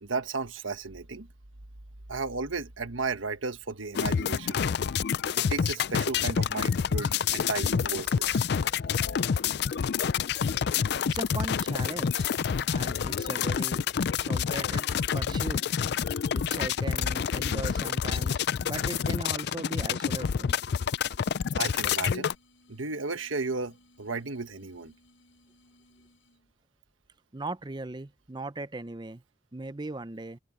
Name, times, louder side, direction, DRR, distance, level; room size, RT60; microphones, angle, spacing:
voice 1, 0.0-1.3 2.1-4.6 5.3-8.4 21.5-22.3 22.7-24.9, right 4 dB, 90° right, 1.5 m, -34 dB
sound 1, 3.9-22.3, left 7 dB, 55° left, 0.4 m, -28 dB
voice 2, 11.0-12.3 12.7-13.8 14.2-14.9 15.1-15.6 16.3-20.6 27.3-29.2 29.5-30.4, right 2 dB, 20° right, 0.6 m, -38 dB
sound 2, 20.0-26.5, left 1 dB, 80° left, 6.6 m, -62 dB
open air
head